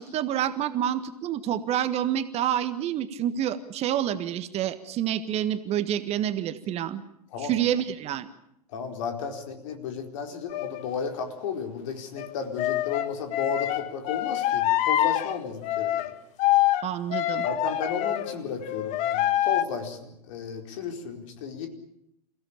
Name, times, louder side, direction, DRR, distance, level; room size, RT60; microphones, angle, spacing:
voice 1, 0.0-7.0 7.4-8.3 16.8-17.4, right 10 dB, 30° right, 11 dB, 1.5 m, -28 dB
voice 2, 8.7-16.1 17.4-21.7, left 6 dB, 55° left, 5 dB, 4.6 m, -33 dB
sound 1, 10.5-10.8 12.2-18.4 18.6-19.6, left 13 dB, 35° left, 1.3 m, -26 dB
28.5 x 16.5 x 8.8 m, 0.79 s
figure-of-eight pair, 95°, 20 cm